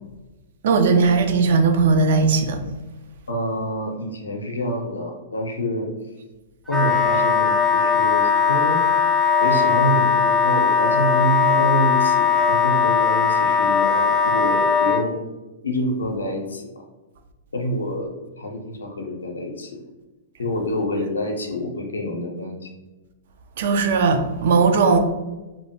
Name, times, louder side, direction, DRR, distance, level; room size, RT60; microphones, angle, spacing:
voice 1, 0.6-2.6 23.6-25.0, right 4 dB, 65° right, 0.4 m, -18 dB
voice 2, 3.3-5.9 6.7-8.8 9.4-15.1 15.6-16.7 17.5-19.8 20.4-22.7, equal, 90° left, 0.5 m, -27 dB
Wind instrument woodwind instrument, 6.7-15.0, left 6 dB, 5° left, 0.4 m, -19 dB
2.7 x 2.1 x 2.8 m
hypercardioid pair, 115°, 0 cm